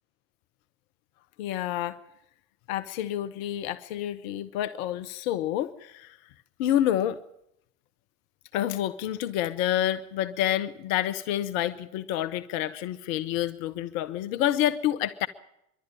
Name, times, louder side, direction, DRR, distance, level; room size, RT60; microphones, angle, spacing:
voice 1, 1.4-2.0 2.7-6.2 6.6-7.2 8.5-15.3, left 12 dB, 70° left, 12 dB, 0.9 m, -28 dB
24.0 x 12.0 x 9.8 m, 0.81 s
hypercardioid pair, 60°, 42 cm